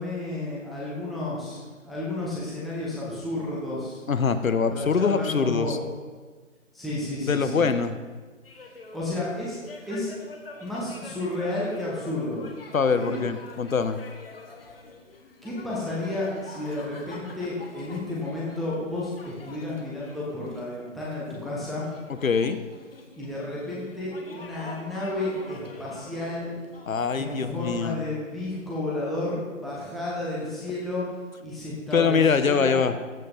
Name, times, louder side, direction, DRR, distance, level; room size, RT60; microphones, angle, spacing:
voice 1, 0.0-4.0 4.7-5.8 6.7-7.7 8.9-9.6 9.9-10.1 10.6-12.4 12.9-13.3 15.4-21.9 23.2-26.5 27.2-31.0 31.4-32.7, left 2 dB, ahead, -7 dB, 0.5 m, -32 dB
voice 2, 4.1-5.8 7.3-8.0 12.7-14.0 22.2-22.6 26.9-27.9 31.9-32.9, left 5 dB, 80° left, 11 dB, 1.1 m, -23 dB
sound 1, 8.4-27.6, left 3 dB, 45° left, 1.5 m, -46 dB
14.5 x 7.8 x 4.0 m, 1.4 s
hypercardioid pair, 170°, 40 cm